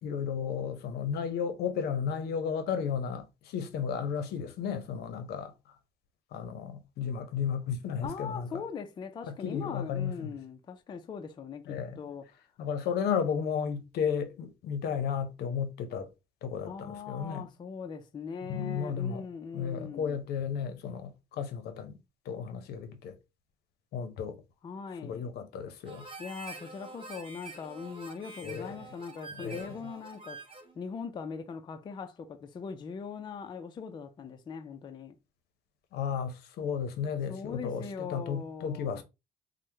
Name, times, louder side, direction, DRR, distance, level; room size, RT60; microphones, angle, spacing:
voice 1, 0.0-5.5 6.3-8.5 9.3-10.3 11.7-12.0 12.6-16.1 16.4-17.4 18.4-19.2 19.5-22.0 22.3-23.2 23.9-24.4 25.0-26.1 28.4-28.7 29.3-29.7 35.9-39.0, left 7 dB, 70° left, 0.6 m, -33 dB
voice 2, 8.0-12.2 16.7-20.2 24.6-25.3 26.2-30.4 30.8-35.2 37.3-39.0, left 5 dB, 25° left, 0.3 m, -40 dB
Harmonica, 25.8-30.8, right 3 dB, 30° right, 0.7 m, -47 dB
3.3 x 2.0 x 3.0 m
cardioid pair, 110°, 17 cm